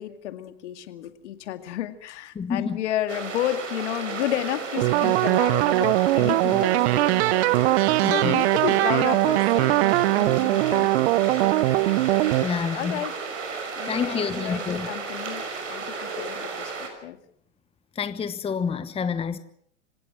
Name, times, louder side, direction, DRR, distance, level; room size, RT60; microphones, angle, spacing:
voice 1, 0.0-12.0 12.7-13.1 13.8-15.4 15.7-16.7 17.0-17.2, left 12 dB, 65° left, 8 dB, 2.2 m, -32 dB
voice 2, 2.3-2.8 8.0-8.4 10.7-10.8 12.4-13.0 13.9-14.9 17.9-19.4, left 6 dB, 15° left, 12 dB, 1.0 m, -28 dB
sound 1, 3.1-16.9, right 4 dB, 80° right, 5.6 m, -34 dB
sound 2, 4.8-12.5, right 18 dB, 60° right, 0.7 m, -21 dB
26.0 x 17.0 x 6.2 m, 0.68 s
hypercardioid pair, 100°, 37 cm